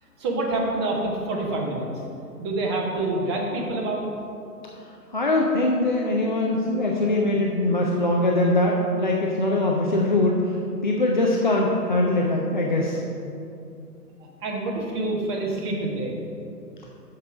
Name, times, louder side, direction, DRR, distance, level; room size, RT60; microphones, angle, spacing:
voice 1, 0.2-1.9 2.4-4.1 14.2-16.1, right 2 dB, 15° right, -1 dB, 0.8 m, -27 dB
voice 2, 5.1-10.5 10.8-13.0, left 2 dB, 30° left, -1 dB, 0.4 m, -22 dB
8.1 x 6.6 x 4.8 m, 2.6 s
figure-of-eight pair, 130°, 49 cm